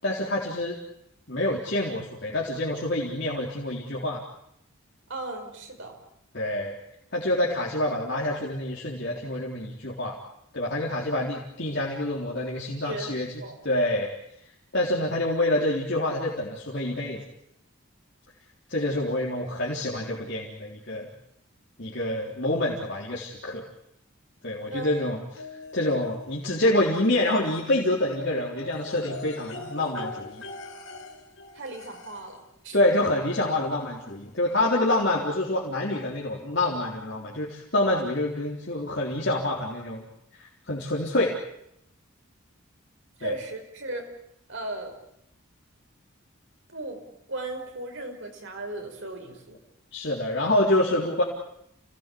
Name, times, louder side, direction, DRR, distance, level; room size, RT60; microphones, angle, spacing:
voice 1, 0.0-0.8 1.3-4.2 6.3-6.7 7.1-10.2 10.5-13.3 13.6-14.1 14.7-17.2 18.7-21.1 21.8-23.6 24.4-25.4 25.7-30.4 32.7-40.0 40.4-41.3 43.2-43.3 49.9-51.2, left 1 dB, 55° left, -3 dB, 3.8 m, -27 dB
voice 2, 5.1-6.0 12.8-13.6 24.7-24.9 31.5-32.4 32.6-32.8 43.2-44.1 44.5-45.0 46.7-47.0 47.3-49.6, right 2 dB, 65° right, 4 dB, 5.4 m, -36 dB
sound 1, 25.3-26.3 26.7-32.4 33.6-33.7 34.1-34.2, left 3 dB, 75° left, 4.1 m, -41 dB
29.5 x 18.5 x 8.6 m, 0.78 s
head